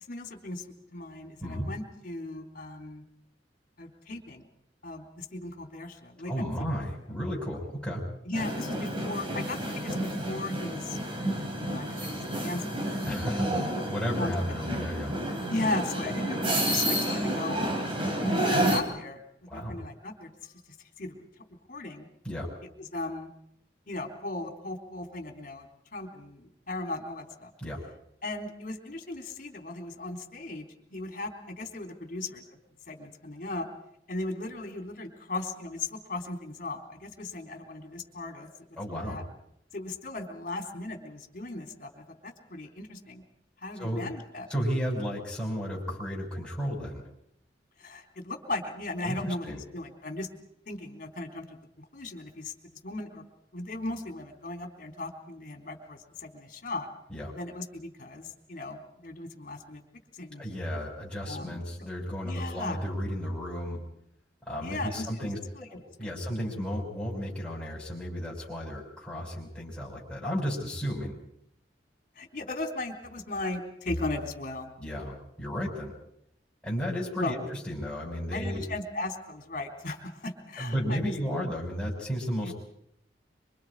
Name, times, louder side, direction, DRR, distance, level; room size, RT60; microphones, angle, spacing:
voice 1, 0.1-0.7 0.9-3.0 3.8-4.5 4.8-6.5 8.3-11.0 11.7-13.6 14.2-14.6 15.5-17.6 18.2-19.2 19.5-20.5 21.0-21.2 21.7-22.1 22.8-23.3 23.9-25.7 25.9-27.5 28.2-32.4 32.9-33.7 34.1-38.5 39.0-39.2 39.7-43.2 43.6-44.5 47.8-50.3 50.7-53.2 53.5-56.9 57.3-59.8 60.1-60.7 61.2-61.6 62.2-62.8 64.6-65.7 66.0-66.2 72.2-74.7 77.2-77.4 78.3-81.1 82.4-82.5, left 2 dB, 50° left, 4 dB, 3.7 m, -37 dB
voice 2, 6.3-8.0 13.1-13.5 13.9-15.1 19.5-19.8 22.2-22.5 27.6-27.8 38.8-39.2 43.8-44.0 44.5-47.1 49.0-49.6 57.1-57.3 60.4-63.8 64.4-65.4 65.7-71.2 74.8-75.9 76.6-77.4 77.7-78.6 80.6-82.5, equal, 5° left, -5 dB, 6.1 m, -33 dB
sound 1, 8.3-18.8, right 1 dB, 30° right, 3.3 m, -30 dB
26.5 x 25.0 x 4.9 m, 0.75 s
head